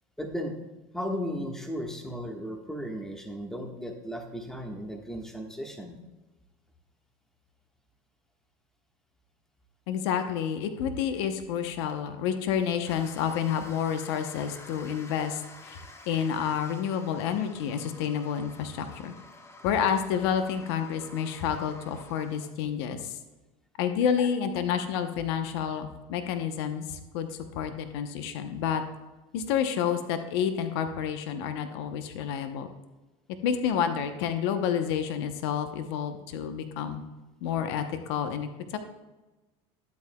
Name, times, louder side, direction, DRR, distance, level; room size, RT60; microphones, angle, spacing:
voice 1, 0.2-0.6 0.9-6.0, equal, 5° left, 3 dB, 1.3 m, -35 dB
voice 2, 9.9-15.8 16.1-19.1 19.6-23.2 23.8-28.8 29.3-32.7 33.4-37.0 37.4-38.8, left 8 dB, 80° left, 8 dB, 0.8 m, -29 dB
sound 1, 12.8-22.5, left 2 dB, 20° left, 0.9 m, -50 dB
11.5 x 8.4 x 2.2 m, 1.1 s
supercardioid pair, 105°, 14 cm